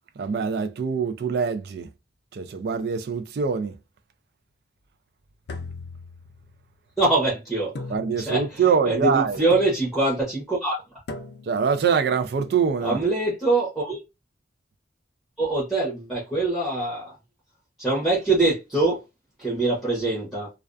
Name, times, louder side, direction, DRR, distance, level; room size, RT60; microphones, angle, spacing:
voice 1, 0.2-1.9 2.3-3.7 7.9-9.4 11.5-13.0, right 6 dB, 60° right, 0.3 m, -24 dB
sound 1, 5.5-6.7 7.7-8.5 9.5-10.1 11.1-11.7, left 3 dB, 65° left, 0.4 m, -38 dB
voice 2, 7.0-7.7 8.1-10.8 12.8-14.0 15.4-17.2 17.8-19.0 19.4-20.5, right 2 dB, ahead, 0.8 m, -24 dB
2.3 x 2.2 x 2.4 m
head